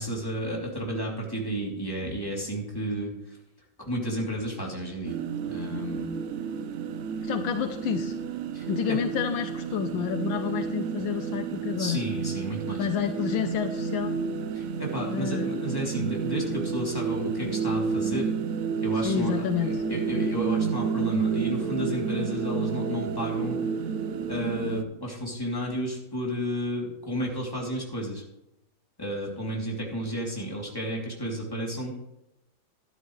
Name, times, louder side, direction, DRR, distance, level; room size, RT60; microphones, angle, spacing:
voice 1, 0.0-3.1 3.8-6.2 8.5-9.0 11.8-12.9 14.5-18.3 18.8-23.6 24.3-28.2 29.0-31.9, equal, 10° left, -2 dB, 2.8 m, -32 dB
sound 1, 5.0-24.8, right 6 dB, 75° right, 0.7 m, -30 dB
voice 2, 7.2-8.1 8.7-12.0 12.8-14.1 15.1-15.6 19.0-19.8, left 8 dB, 75° left, 8 dB, 1.4 m, -29 dB
12.5 x 12.0 x 3.2 m, 0.86 s
omnidirectional pair, 2.2 m